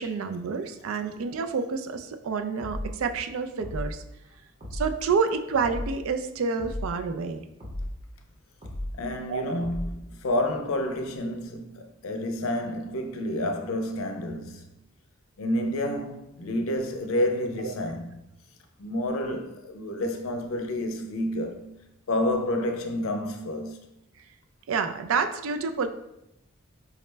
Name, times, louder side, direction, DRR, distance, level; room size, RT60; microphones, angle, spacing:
voice 1, 0.0-4.0 4.7-7.4 9.3-9.6 17.6-17.7 24.7-25.9, right 5 dB, 80° right, 0.4 m, -28 dB
sound 1, 2.6-3.0 3.6-4.0 4.6-5.0 5.6-6.0 6.6-7.0 7.6-8.0 8.6-9.0 9.6-10.0, left 1 dB, 30° right, 0.7 m, -34 dB
voice 2, 8.9-14.7 15.4-18.1 18.8-21.7 22.1-23.8, left 1 dB, 80° left, 0.5 m, -29 dB
4.8 x 2.1 x 3.2 m
head